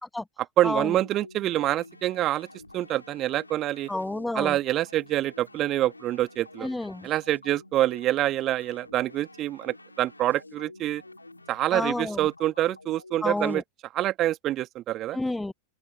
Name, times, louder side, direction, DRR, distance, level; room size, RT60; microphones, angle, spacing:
voice 1, 0.6-2.5 2.7-3.9 4.3-6.7 7.0-11.0 11.5-13.6 13.9-15.2, right 14 dB, 35° right, 1.4 m, -26 dB
sound 1, 0.9-13.5, left 3 dB, 80° left, 3.3 m, -50 dB
sound 2, 1.4-11.4, right 5 dB, 75° right, 4.5 m, -59 dB
voice 2, 3.9-4.6 6.6-7.1 11.7-12.2 13.2-13.6 15.1-15.5, left 2 dB, 5° left, 0.4 m, -29 dB
open air
figure-of-eight pair, 90°, 0 cm